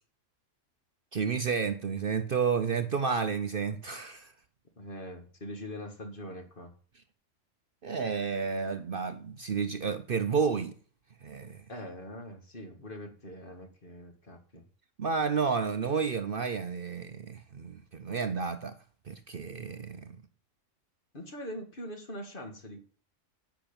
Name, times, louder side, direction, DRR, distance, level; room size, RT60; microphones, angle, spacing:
voice 1, 1.1-4.3 7.8-10.8 11.2-11.6 15.0-18.8 19.1-20.2, right 5 dB, 50° right, 0.8 m, -31 dB
voice 2, 4.8-6.7 11.7-14.6 21.1-22.8, equal, 45° left, 2.1 m, -42 dB
10.5 x 6.0 x 8.8 m
omnidirectional pair, 1.3 m